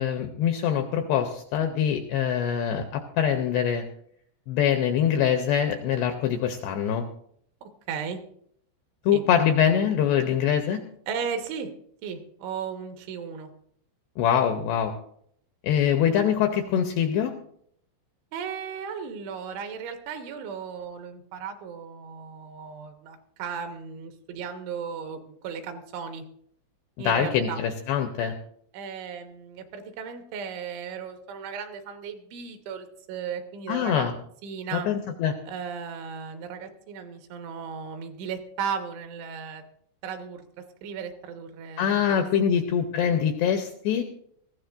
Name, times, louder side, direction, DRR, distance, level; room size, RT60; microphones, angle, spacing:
voice 1, 0.0-3.8 4.5-7.0 9.1-10.8 14.2-14.9 15.6-17.3 27.0-28.4 33.7-34.1 34.7-35.4 41.8-44.0, left 8 dB, 85° left, 5 dB, 2.4 m, -24 dB
voice 2, 7.9-8.2 9.1-9.2 11.1-11.7 12.0-13.5 18.3-26.2 27.0-27.6 28.7-34.1 34.4-34.9 35.5-39.6 40.0-40.4 40.8-42.3 42.5-42.6, right 6 dB, 75° right, 5 dB, 3.4 m, -35 dB
20.0 x 15.0 x 2.6 m, 0.67 s
omnidirectional pair, 5.7 m